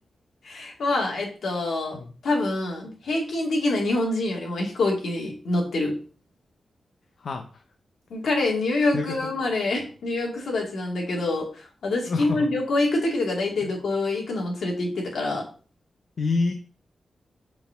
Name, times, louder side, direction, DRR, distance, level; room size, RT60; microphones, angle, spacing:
voice 1, 0.4-6.0 8.1-15.4, left 2 dB, 75° left, 0 dB, 2.6 m, -26 dB
voice 2, 7.2-7.6 8.9-9.2 12.0-12.5 13.6-13.7 16.2-16.5, left 3 dB, 60° left, 5 dB, 0.9 m, -27 dB
5.9 x 4.4 x 5.8 m, 0.38 s
wide cardioid pair, 165°, 0 cm